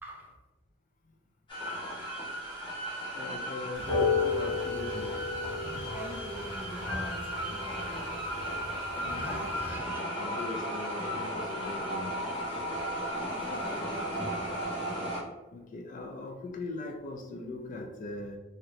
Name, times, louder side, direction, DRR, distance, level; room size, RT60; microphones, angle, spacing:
voice 1, 0.0-0.4 5.9-8.2 9.2-10.0 13.2-14.7, right 1 dB, 10° right, -1 dB, 0.5 m, -44 dB
sound 1, 1.5-15.2, equal, 25° left, 0.9 m, -35 dB
voice 2, 3.1-5.2 8.9-12.2 15.5-18.4, left 2 dB, 45° left, 3 dB, 0.3 m, -41 dB
sound 2, 3.8-9.8, left 4 dB, 75° left, 1.3 m, -34 dB
2.8 x 2.5 x 3.1 m, 1.1 s
head